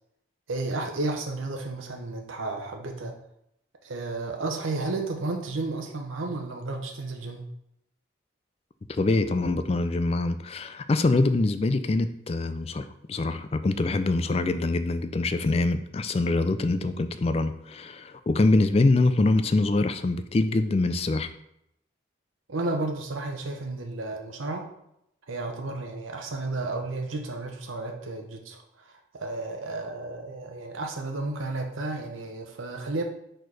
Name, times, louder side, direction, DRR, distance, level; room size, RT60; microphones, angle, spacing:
voice 1, 0.5-3.2 3.8-7.4 22.5-24.7 25.3-33.0, right 2 dB, 90° right, 2 dB, 0.8 m, -32 dB
voice 2, 8.9-21.3, left 2 dB, 30° left, 11 dB, 0.3 m, -24 dB
4.5 x 4.4 x 4.7 m, 0.77 s
head